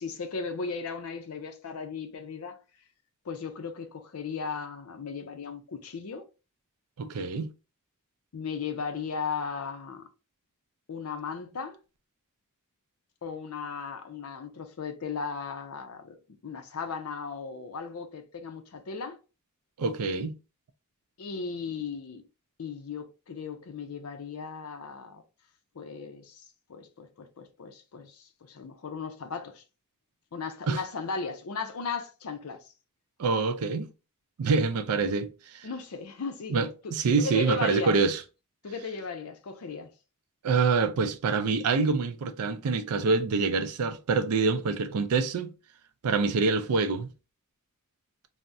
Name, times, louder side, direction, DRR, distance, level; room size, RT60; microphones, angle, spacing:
voice 1, 0.0-2.6 3.2-6.3 8.3-10.1 10.9-11.8 13.2-16.2 16.4-19.2 21.2-22.2 22.6-25.2 25.7-29.6 30.3-32.7 35.6-36.5 37.2-38.0 38.6-39.9, left 5 dB, 80° left, 0.5 m, -36 dB
voice 2, 7.0-7.5 19.8-20.4 30.7-30.8 33.2-33.9 34.4-35.7 36.5-38.2 40.4-45.5 46.0-47.1, right 4 dB, 90° right, 0.4 m, -26 dB
3.4 x 2.1 x 2.6 m
head